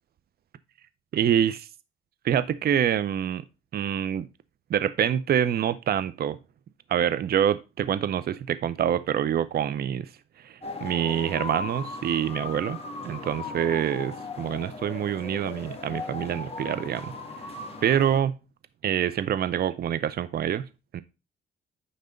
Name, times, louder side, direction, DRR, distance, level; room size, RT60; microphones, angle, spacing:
voice 1, 1.1-1.7 2.2-3.4 3.7-4.3 4.7-6.4 6.9-10.1 10.4-17.1 17.8-18.4 18.8-20.7 20.9-21.0, right 9 dB, 50° right, 0.6 m, -26 dB
sound 1, 10.6-18.2, left 3 dB, 30° left, 1.7 m, -37 dB
9.5 x 3.4 x 5.0 m
cardioid pair, 90°, 20 cm